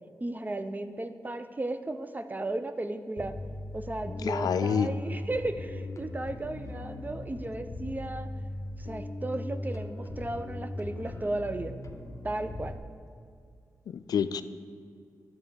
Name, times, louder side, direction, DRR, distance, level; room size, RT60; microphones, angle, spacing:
voice 1, 0.2-3.4 3.7-8.3 8.8-11.7 12.2-12.8, right 2 dB, 25° right, 9 dB, 0.6 m, -35 dB
Bass guitar, 3.2-12.8, left 1 dB, 50° left, 0.8 m, -38 dB
voice 2, 4.2-4.9 13.9-14.4, left 7 dB, 80° left, 12 dB, 0.3 m, -28 dB
10.5 x 4.2 x 6.9 m, 2.2 s
cardioid pair, 55°, 7 cm